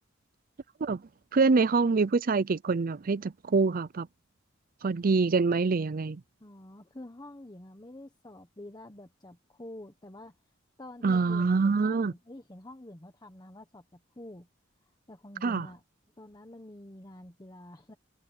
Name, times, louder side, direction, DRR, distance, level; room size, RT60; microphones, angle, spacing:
voice 1, 1.3-4.1 4.8-6.2 11.0-12.1 15.4-15.7, right 4 dB, 45° right, 0.5 m, -25 dB
voice 2, 6.4-10.4 10.8-14.5 14.8-15.8 16.2-17.9, left 1 dB, 20° left, 1.3 m, -47 dB
head